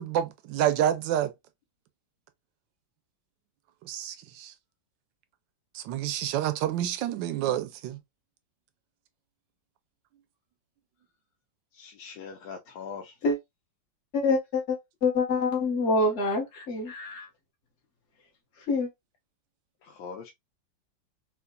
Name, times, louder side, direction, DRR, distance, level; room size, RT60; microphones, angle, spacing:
voice 1, 0.0-1.3 3.8-4.5 5.7-8.0, right 11 dB, 75° right, 1.2 m, -28 dB
voice 2, 11.7-13.1 19.8-20.3, left 6 dB, 85° left, 1.5 m, -41 dB
voice 3, 14.1-17.3 18.7-18.9, left 3 dB, 40° left, 1.5 m, -26 dB
4.8 x 2.5 x 2.2 m
omnidirectional pair, 2.1 m